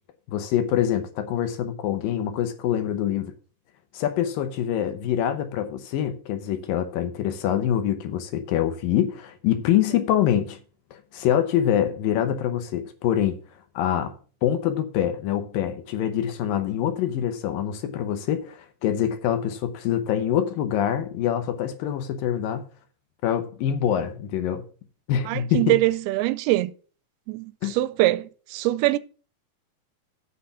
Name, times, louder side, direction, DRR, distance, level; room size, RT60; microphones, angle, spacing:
voice 1, 0.3-3.3 3.9-10.6 10.9-13.4 13.8-14.2 14.4-22.7 23.2-24.6 25.1-25.8 27.6-27.7, left 10 dB, 75° left, 2.5 m, -25 dB
voice 2, 25.3-26.7 27.3-29.0, right 17 dB, 90° right, 2.5 m, -23 dB
8.5 x 5.6 x 6.8 m
omnidirectional pair, 4.4 m